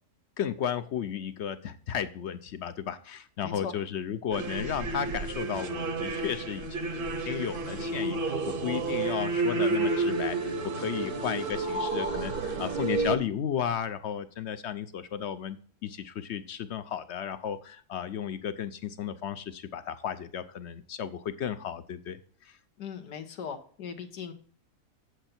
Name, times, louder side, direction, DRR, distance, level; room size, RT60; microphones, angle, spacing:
voice 1, 0.4-6.7 7.3-22.2 22.4-22.6, left 9 dB, 60° left, 12 dB, 0.7 m, -34 dB
voice 2, 3.4-3.7 22.8-24.3, left 7 dB, 90° left, 7 dB, 1.7 m, -39 dB
sound 1, 4.3-13.2, right 3 dB, 45° right, 0.8 m, -30 dB
8.2 x 7.8 x 4.3 m, 0.43 s
omnidirectional pair, 1.7 m